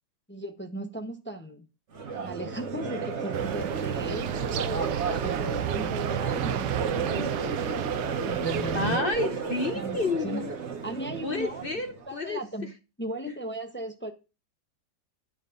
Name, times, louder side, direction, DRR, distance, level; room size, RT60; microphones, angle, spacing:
voice 1, 0.3-1.6 2.1-6.7 8.2-9.1 9.7-10.0 10.2-10.4 10.8-11.6 12.1-12.7 13.0-14.1, right 1 dB, 10° left, 0.8 m, -36 dB
Crowd, 1.9-12.1, right 5 dB, 40° right, 1.3 m, -32 dB
sound 1, 3.3-9.0, right 12 dB, 70° right, 1.2 m, -33 dB
voice 2, 7.0-7.3 8.7-10.5 11.2-12.7, left 3 dB, 50° left, 0.6 m, -31 dB
9.9 x 6.3 x 5.2 m
omnidirectional pair, 2.1 m